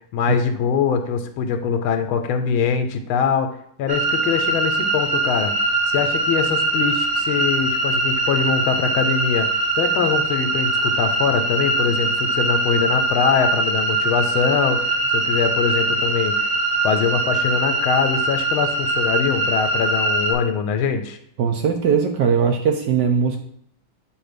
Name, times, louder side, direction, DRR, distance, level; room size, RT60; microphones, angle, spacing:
voice 1, 0.1-3.5 3.8-5.6 5.9-16.5 16.8-21.2, left 6 dB, 90° left, 6 dB, 1.4 m, -23 dB
sound 1, 3.9-20.3, right 2 dB, 40° right, 1.1 m, -22 dB
voice 2, 21.4-23.4, right 6 dB, 75° right, 4 dB, 1.0 m, -19 dB
7.8 x 2.6 x 5.0 m, 0.70 s
omnidirectional pair, 2.2 m